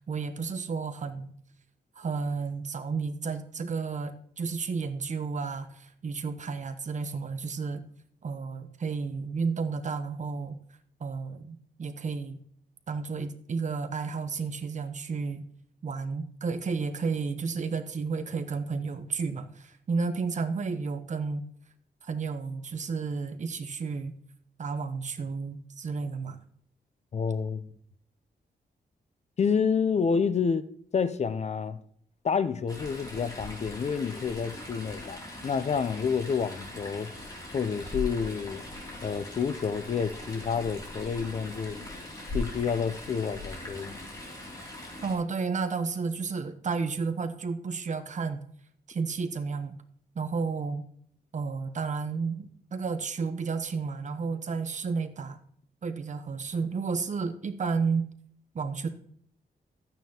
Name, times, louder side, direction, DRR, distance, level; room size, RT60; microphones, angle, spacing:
voice 1, 0.1-1.3 2.0-7.8 8.2-10.6 11.0-12.4 12.9-15.4 15.8-21.4 22.0-24.1 24.6-26.4 45.0-48.4 48.9-49.8 50.1-50.9 51.3-55.4 55.8-58.1 58.5-58.9, right 4 dB, 45° right, 0.8 m, -32 dB
voice 2, 27.1-27.7 29.4-30.7 30.9-31.8 32.2-37.1 37.5-38.6 39.0-41.8 42.3-44.0, left 6 dB, 40° left, 0.5 m, -29 dB
Chatter / Stream, 32.7-45.1, left 2 dB, 20° left, 2.8 m, -40 dB
12.5 x 9.1 x 2.9 m
wide cardioid pair, 150°, 17 cm